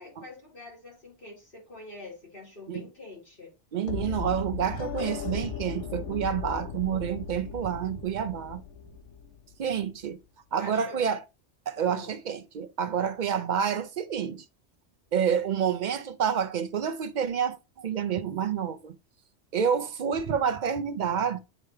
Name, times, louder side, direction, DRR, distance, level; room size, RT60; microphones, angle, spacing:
voice 1, 0.0-3.5 10.6-11.1 11.8-12.1, left 2 dB, 50° left, 2.7 m, -45 dB
voice 2, 3.7-8.6 9.6-10.2 10.5-11.2 11.7-14.4 15.1-18.9 19.5-21.4, right 7 dB, 55° right, 0.5 m, -28 dB
sound 1, 3.9-9.8, left 7 dB, 85° left, 0.9 m, -37 dB
8.8 x 3.4 x 3.2 m
omnidirectional pair, 1.2 m